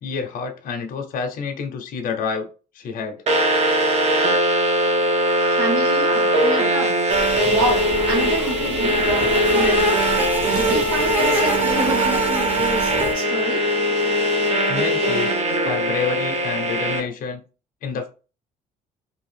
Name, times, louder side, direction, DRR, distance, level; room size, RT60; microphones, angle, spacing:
voice 1, 0.0-2.5 2.7-3.2 14.7-15.3 15.6-17.4 17.8-18.1, left 5 dB, 55° left, 0.6 m, -28 dB
sound 1, 3.3-17.0, equal, 40° right, 0.7 m, -20 dB
voice 2, 5.3-6.9 7.5-9.9 10.5-13.6, right 2 dB, 75° right, 1.6 m, -28 dB
sound 2, 7.1-13.1, right 2 dB, 10° right, 0.7 m, -26 dB
2.7 x 2.3 x 3.2 m
cardioid pair, 110°, 17 cm